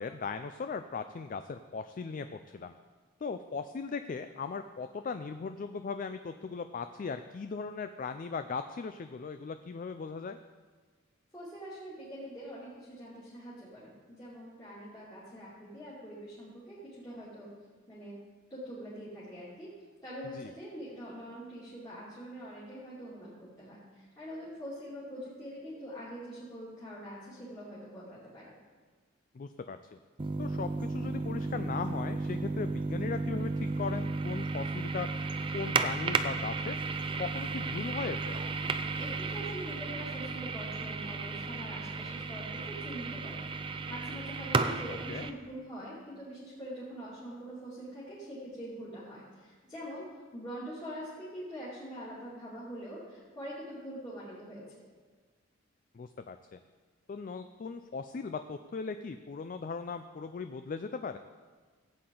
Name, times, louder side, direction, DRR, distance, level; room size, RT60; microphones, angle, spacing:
voice 1, 0.0-2.7 3.2-10.4 20.3-20.5 29.3-30.0 30.4-35.3 35.5-36.8 37.2-38.4 45.1-45.3 55.9-56.6 57.1-61.2, left 5 dB, 40° left, 9 dB, 0.3 m, -38 dB
voice 2, 11.3-17.5 17.9-18.2 18.5-19.7 20.0-28.6 39.0-50.1 50.3-54.8, equal, 20° left, -10 dB, 2.7 m, -44 dB
sound 1, 30.2-45.3, right 3 dB, 25° right, 0.4 m, -34 dB
15.5 x 8.6 x 3.8 m, 1.5 s
head